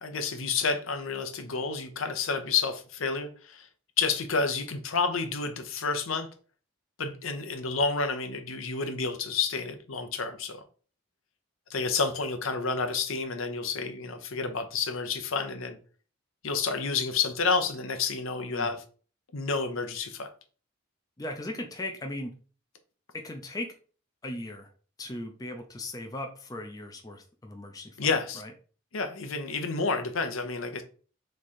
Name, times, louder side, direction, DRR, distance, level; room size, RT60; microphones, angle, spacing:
voice 1, 0.0-3.7 4.0-6.3 7.0-10.6 11.7-15.8 16.4-18.8 19.3-20.3 28.0-28.4 28.9-30.8, left 4 dB, 80° left, 0.7 m, -30 dB
voice 2, 21.2-22.3 23.1-23.7 24.2-24.7 25.0-28.5, left 1 dB, 20° left, 0.5 m, -38 dB
3.6 x 3.2 x 4.2 m
head